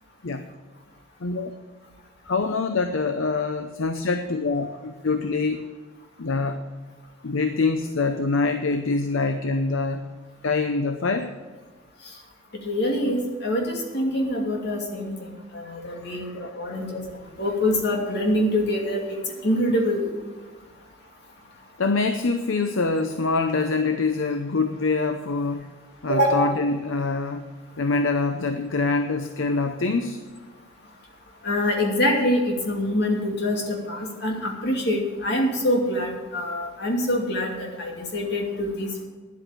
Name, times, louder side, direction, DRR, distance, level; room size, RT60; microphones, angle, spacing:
voice 1, 2.3-5.6 6.2-6.6 7.2-10.0 10.4-11.3 16.1-16.3 21.8-25.6 26.0-27.4 27.8-30.2, left 3 dB, 70° left, 7 dB, 0.7 m, -25 dB
voice 2, 12.6-17.0 17.4-20.1 26.1-26.5 31.4-39.0, left 1 dB, 55° left, 0 dB, 2.6 m, -25 dB
10.5 x 8.3 x 7.5 m, 1.3 s
head